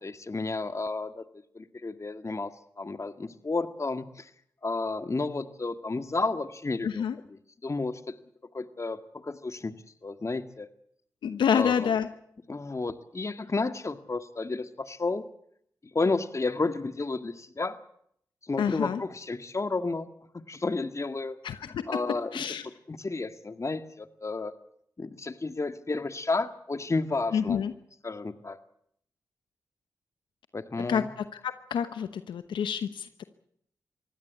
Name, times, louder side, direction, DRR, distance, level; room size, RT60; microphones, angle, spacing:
voice 1, 0.0-1.2 1.5-2.5 2.8-4.3 4.6-8.1 8.5-9.7 10.0-10.7 11.5-11.9 12.5-15.2 15.9-17.8 18.4-20.1 20.5-21.4 21.7-22.4 22.9-24.5 25.0-27.6 28.0-28.6 30.5-31.1, left 3 dB, 40° left, 9 dB, 2.0 m, -32 dB
voice 2, 6.8-7.2 11.2-12.1 18.6-19.0 21.4-21.8 22.3-22.7 27.3-27.7 30.9-31.0 31.3-33.2, left 7 dB, 80° left, 11 dB, 1.0 m, -28 dB
24.0 x 16.0 x 8.5 m, 0.70 s
supercardioid pair, 40°, 8 cm